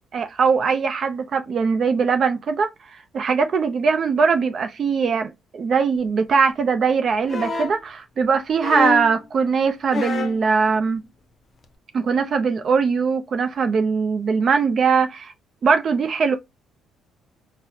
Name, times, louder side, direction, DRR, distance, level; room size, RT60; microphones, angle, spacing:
voice 1, 0.1-11.0 11.9-15.3 15.6-16.4, right 5 dB, 50° right, 0.4 m, -21 dB
sound 1, 7.3-7.8 8.6-9.2 9.9-10.4 11.6-11.7, left 4 dB, 40° left, 0.6 m, -26 dB
3.9 x 2.0 x 2.6 m
supercardioid pair, 80°, 0 cm